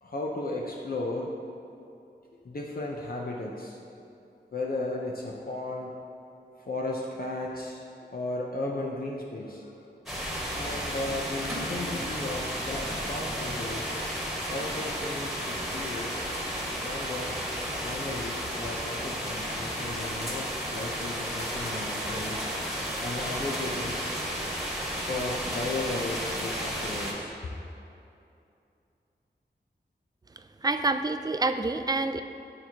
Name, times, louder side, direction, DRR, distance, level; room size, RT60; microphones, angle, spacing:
voice 1, 0.0-1.3 2.4-3.8 4.5-6.0 6.6-7.8 8.1-9.7 10.3-13.9 14.5-16.1 16.6-17.4 17.8-22.4 22.8-24.0 25.0-27.3, left 2 dB, 55° left, -2 dB, 0.6 m, -35 dB
sound 1, 10.1-27.1, equal, ahead, 1.5 m, -33 dB
voice 2, 30.6-32.2, right 3 dB, 20° right, 9 dB, 0.3 m, -27 dB
11.0 x 4.5 x 2.9 m, 2.7 s
wide cardioid pair, 60°, 18 cm